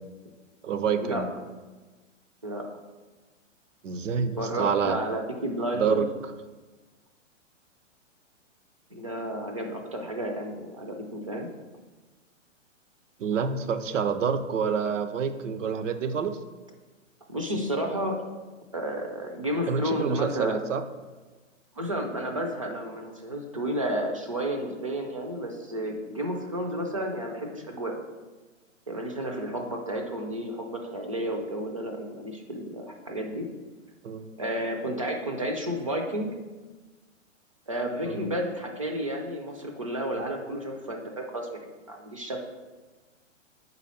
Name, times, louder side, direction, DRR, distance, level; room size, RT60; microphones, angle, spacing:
voice 1, 0.6-1.3 3.8-5.0 5.7-6.1 13.2-16.4 19.7-20.8 34.0-34.2 38.0-38.2, right 6 dB, 70° right, 10 dB, 0.7 m, -27 dB
voice 2, 4.4-6.0 8.9-11.5 17.3-18.2 18.7-20.7 21.8-28.0 28.9-33.5 34.4-36.3 37.7-42.4, right 1 dB, 25° right, 2 dB, 0.4 m, -32 dB
4.7 x 4.1 x 5.5 m, 1.3 s
hypercardioid pair, 170°, 38 cm